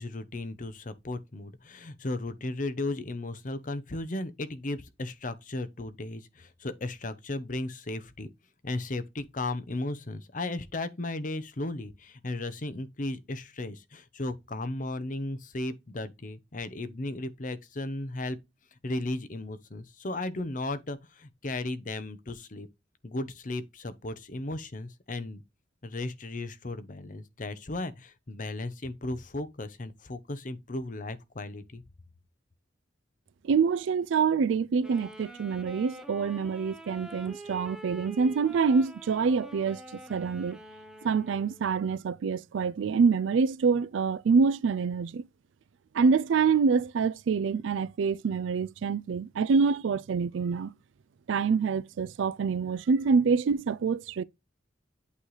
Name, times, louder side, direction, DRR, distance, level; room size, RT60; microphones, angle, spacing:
voice 1, 0.0-8.3 8.6-18.4 18.8-22.7 23.0-25.4 25.8-31.8, left 2 dB, 45° left, 0.7 m, -35 dB
voice 2, 33.4-40.6 41.0-45.2 45.9-50.7 51.3-54.2, right 5 dB, 80° right, 0.4 m, -26 dB
Wind instrument woodwind instrument, 34.8-41.7, right 1 dB, 5° right, 0.9 m, -46 dB
8.5 x 3.2 x 3.9 m
head